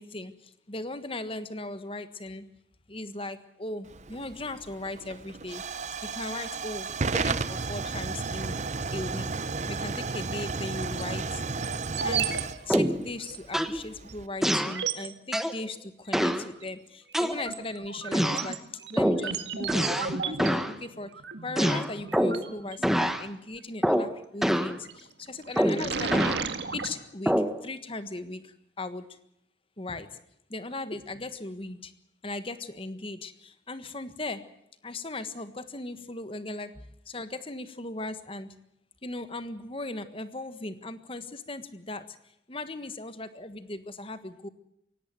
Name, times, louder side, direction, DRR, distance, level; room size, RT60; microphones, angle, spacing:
voice 1, 0.0-2.5 2.9-5.6 6.0-6.9 7.1-8.5 8.9-9.4 9.7-11.4 12.0-12.3 12.7-18.6 18.9-21.1 21.4-26.4 26.7-29.1 29.8-30.2 30.5-31.9 32.2-34.4 34.8-38.6 39.0-42.2 42.5-44.5, left 2 dB, 30° left, 11 dB, 1.5 m, -38 dB
Hiss / Fire / Tick, 3.9-14.3, right 4 dB, 40° right, 0.8 m, -33 dB
sound 1, 10.6-11.0 11.6-12.4 12.7-12.8 13.3-13.4 14.1-14.2 14.6-15.1 16.3-16.7 17.1-23.0 24.6-25.0 25.4-27.0, right 6 dB, 70° right, 2.0 m, -34 dB
sound 2, 12.7-13.1 13.5-13.8 14.4-14.8 15.3-15.6 16.1-16.5 17.1-17.7 18.1-18.5 19.0-19.3 19.7-20.1 20.4-20.7 21.6-22.5 22.8-23.2 23.8-24.1 24.4-24.8 25.6-26.4 27.3-27.6, equal, ahead, 1.1 m, -25 dB
23.5 x 17.5 x 7.7 m, 0.77 s
head